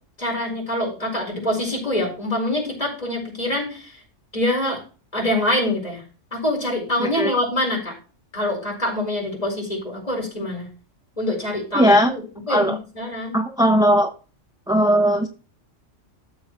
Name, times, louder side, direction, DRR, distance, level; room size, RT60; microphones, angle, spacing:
voice 1, 0.2-4.0 4.3-4.8 5.1-6.0 6.3-7.9 8.3-10.7 11.2-13.4, left 1 dB, 30° left, -1 dB, 4.6 m, -25 dB
voice 2, 7.0-7.3 11.7-12.1 12.5-12.8 13.3-14.1 14.7-15.3, equal, 5° right, 5 dB, 0.5 m, -18 dB
13.5 x 7.5 x 3.0 m, 0.35 s
omnidirectional pair, 1.3 m